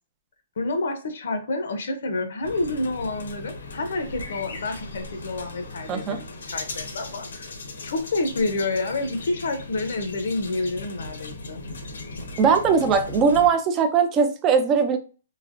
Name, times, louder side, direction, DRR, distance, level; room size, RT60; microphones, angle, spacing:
voice 1, 0.6-7.5 7.8-11.6, left 2 dB, 60° left, 0.7 m, -28 dB
sound 1, 2.4-13.5, left 2 dB, 85° left, 1.0 m, -38 dB
voice 2, 12.4-15.0, right 6 dB, 15° right, 0.4 m, -20 dB
3.2 x 2.7 x 2.5 m
hypercardioid pair, 175°, 0 cm